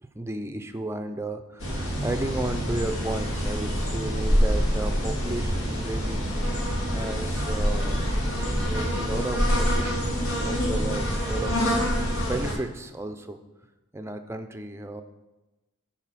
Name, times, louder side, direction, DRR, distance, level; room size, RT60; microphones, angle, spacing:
voice 1, 0.0-6.2 6.9-8.1 8.6-11.6 12.2-13.4 13.9-15.0, right 2 dB, 10° right, 7 dB, 0.5 m, -34 dB
sound 1, 1.6-12.5, equal, 75° left, 2.4 m, -26 dB
11.0 x 4.5 x 5.8 m, 1.1 s
head